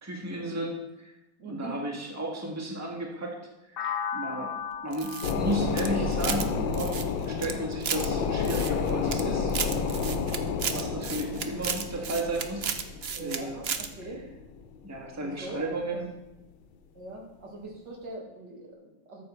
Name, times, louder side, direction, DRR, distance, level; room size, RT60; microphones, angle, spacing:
voice 1, 0.0-1.1 1.5-3.4 3.6-4.5 4.8-9.5 10.7-12.7 13.2-13.6 14.8-16.1, right 2 dB, 10° right, 0 dB, 1.5 m, -34 dB
voice 2, 1.4-1.7 13.1-14.2 15.2-16.0 16.9-19.2, right 2 dB, 70° right, -1 dB, 2.7 m, -42 dB
sound 1, 3.8-7.6, left 7 dB, 65° left, 0.5 m, -37 dB
sound 2, 4.9-6.5 6.7-8.1 8.4-9.2 9.5-13.4 13.6-13.9, right 7 dB, 55° right, 0.7 m, -33 dB
sound 3, 5.2-15.2 15.6-15.7, left 6 dB, 80° left, 1.5 m, -31 dB
13.5 x 7.7 x 4.4 m, 0.93 s
omnidirectional pair, 2.0 m